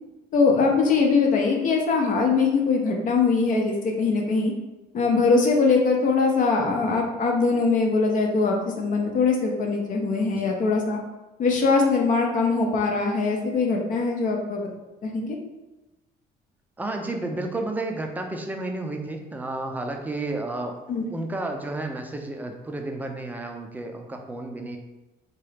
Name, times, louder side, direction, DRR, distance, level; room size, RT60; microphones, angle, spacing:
voice 1, 0.3-4.5 4.9-11.0 11.4-14.6 15.0-15.4 20.9-21.0, left 4 dB, 50° left, 1 dB, 0.6 m, -22 dB
voice 2, 16.8-20.8 21.1-24.8, right 2 dB, 10° right, 3 dB, 0.4 m, -31 dB
2.9 x 2.4 x 3.2 m, 1.1 s
cardioid pair, 110°, 17 cm